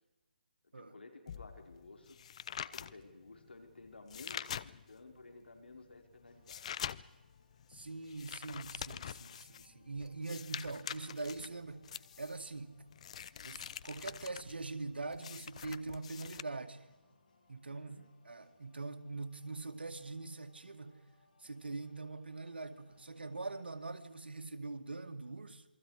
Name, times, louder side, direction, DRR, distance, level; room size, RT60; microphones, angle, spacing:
voice 1, 0.7-2.2 2.5-6.7 17.7-18.1, left 3 dB, 85° left, 4.6 m, -54 dB
sound 1, 1.3-5.1 5.6-16.4, left 9 dB, 40° left, 0.6 m, -45 dB
sound 2, 6.1-24.3, left 3 dB, 55° left, 7.7 m, -71 dB
voice 2, 7.7-12.8 13.4-16.9 17.5-21.0 21.4-25.6, right 3 dB, 85° right, 2.2 m, -43 dB
28.0 x 22.5 x 5.0 m
hypercardioid pair, 155°, 5 cm